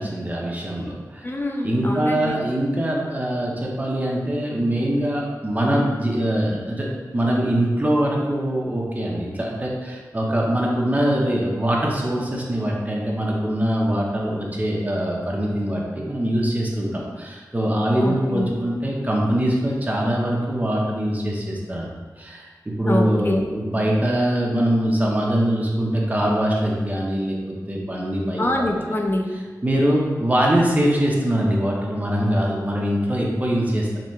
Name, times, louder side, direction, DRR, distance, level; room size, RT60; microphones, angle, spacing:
voice 1, 0.0-1.2 1.6-6.9 7.1-21.9 22.2-27.4 27.7-28.4 29.6-34.0, right 1 dB, 25° right, -3 dB, 0.8 m, -23 dB
voice 2, 1.2-2.4 18.0-18.5 22.8-23.4 28.4-29.3, left 1 dB, 30° left, 1 dB, 0.5 m, -24 dB
4.0 x 3.3 x 3.2 m, 1.4 s
wide cardioid pair, 70°, 7 cm